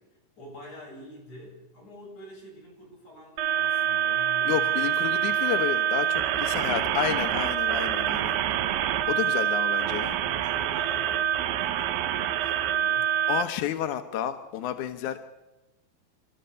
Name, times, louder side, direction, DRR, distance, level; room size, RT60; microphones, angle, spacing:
voice 1, 0.4-5.4 9.0-9.4 9.8-13.2, equal, 40° left, -2 dB, 8.7 m, -47 dB
sound 1, 3.4-13.4, right 10 dB, 75° right, 2.8 m, -26 dB
voice 2, 4.5-8.4 9.1-10.2 13.3-15.2, left 10 dB, 70° left, 7 dB, 1.9 m, -30 dB
28.5 x 13.5 x 6.9 m, 1.0 s
omnidirectional pair, 4.7 m